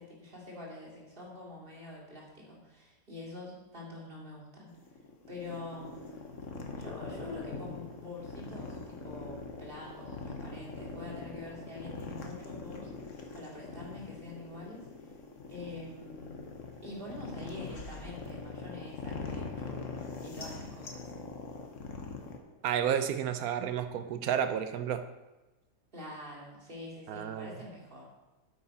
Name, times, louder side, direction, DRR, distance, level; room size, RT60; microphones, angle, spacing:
voice 1, 0.0-4.7 5.3-6.3 6.8-12.9 13.3-14.8 15.5-16.4 16.8-21.1 25.9-28.1, left 2 dB, 40° right, -4 dB, 2.7 m, -45 dB
sound 1, 4.7-22.4, left 4 dB, 60° left, 1.4 m, -42 dB
voice 2, 22.6-25.0 27.1-27.5, right 9 dB, 85° right, 10 dB, 1.2 m, -31 dB
8.7 x 8.5 x 4.3 m, 1.1 s
omnidirectional pair, 1.5 m